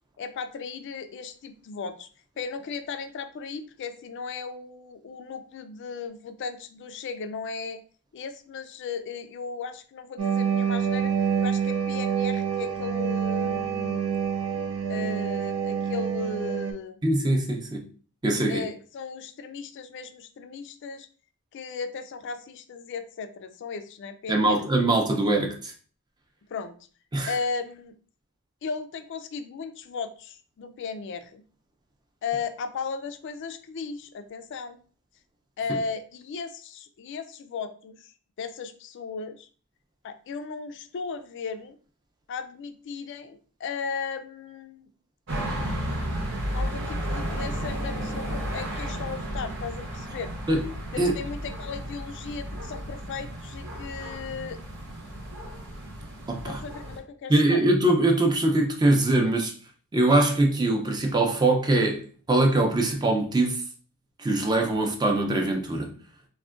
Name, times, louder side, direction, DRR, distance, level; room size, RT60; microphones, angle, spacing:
voice 1, 0.2-2.1 2.4-7.8 8.1-11.1 11.4-14.1 14.9-17.1 18.5-21.1 21.5-24.6 26.5-26.8 27.3-28.0 28.6-31.4 32.2-34.8 35.6-39.5 40.0-41.8 42.3-44.9 46.5-50.3 50.9-54.6 56.4-57.6, left 5 dB, 55° left, 0.3 m, -36 dB
sound 1, 10.2-16.7, right 7 dB, 90° right, 0.5 m, -27 dB
voice 2, 17.0-17.8 18.2-18.6 24.3-25.7 27.1-27.3 50.5-50.6 51.0-51.1 56.3-56.6 57.3-59.5 59.9-62.0 62.3-63.6 64.2-65.9, right 2 dB, 20° right, 0.4 m, -22 dB
sound 2, 45.3-57.0, equal, 55° right, 0.9 m, -33 dB
3.5 x 2.1 x 2.4 m
head